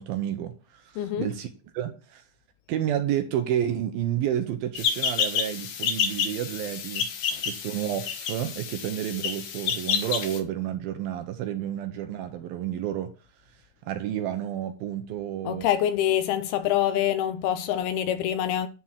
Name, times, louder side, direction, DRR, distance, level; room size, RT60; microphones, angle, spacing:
voice 1, 0.0-1.5 1.7-2.2 2.7-7.1 7.4-13.1 13.9-15.7, right 10 dB, 70° right, 2.4 m, -30 dB
voice 2, 1.0-1.3 7.3-7.4 15.5-18.7, left 11 dB, 75° left, 2.5 m, -25 dB
sound 1, 4.8-10.4, left 7 dB, 60° left, 2.5 m, -29 dB
11.0 x 4.5 x 7.4 m
omnidirectional pair, 4.9 m